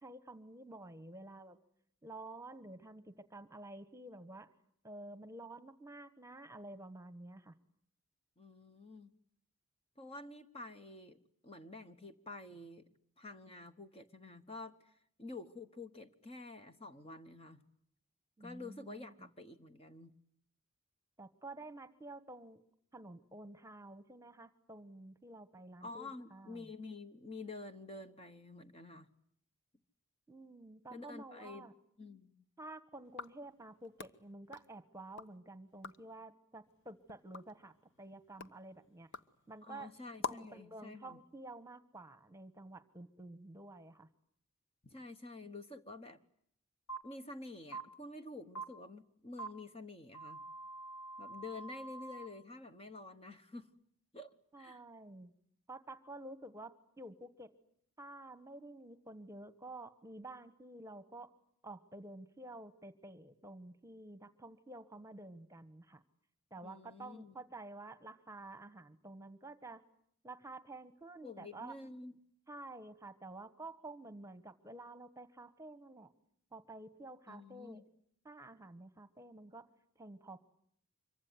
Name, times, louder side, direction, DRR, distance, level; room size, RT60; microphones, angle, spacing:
voice 1, 0.0-1.6 2.0-4.5 4.8-7.5 18.4-19.1 21.2-22.6 22.9-26.7 30.3-31.7 32.6-39.1 39.5-39.9 40.3-44.1 54.5-55.3 55.7-57.5 58.0-61.3 61.6-66.0 66.5-69.8 70.2-71.7 72.5-76.1 76.5-77.8 78.2-79.6 79.9-80.4, right 2 dB, 15° right, 12 dB, 1.3 m, -50 dB
voice 2, 8.4-9.1 10.0-12.8 13.2-17.6 18.4-20.1 25.8-29.1 30.9-31.7 32.0-32.4 39.6-41.2 44.8-46.2 47.0-50.4 51.2-53.7 54.1-54.8 66.6-67.3 71.2-72.2 77.3-77.8, left 2 dB, 25° left, 9 dB, 1.2 m, -49 dB
sound 1, 33.0-35.4 35.7-36.2 36.6-40.6, left 4 dB, 55° left, 1.1 m, -48 dB
sound 2, 46.9-47.0 47.7-47.8 48.5-48.6 49.4-49.5 50.1-52.3, right 3 dB, 85° left, 3.0 m, -45 dB
26.0 x 23.5 x 9.5 m, 0.67 s
head